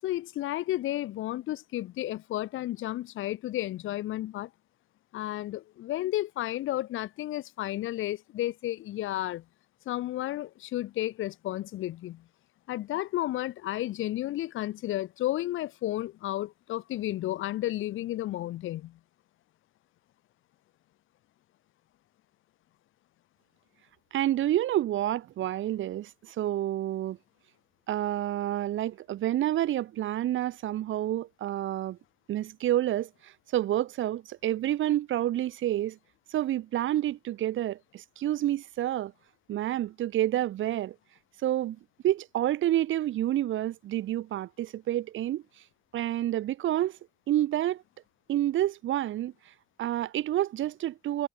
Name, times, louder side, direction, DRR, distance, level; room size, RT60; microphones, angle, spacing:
voice 1, 0.0-4.5 5.1-9.4 9.9-12.2 12.7-19.0, left 14 dB, 85° left, 6.9 m, -32 dB
voice 2, 24.1-27.2 27.9-32.0 32.3-36.0 36.3-39.1 39.5-40.9 41.4-41.8 42.0-45.4 45.9-47.0 47.3-47.8 48.3-49.3 49.8-51.3, right 13 dB, 80° right, 3.2 m, -29 dB
cardioid pair, 90°, 20 cm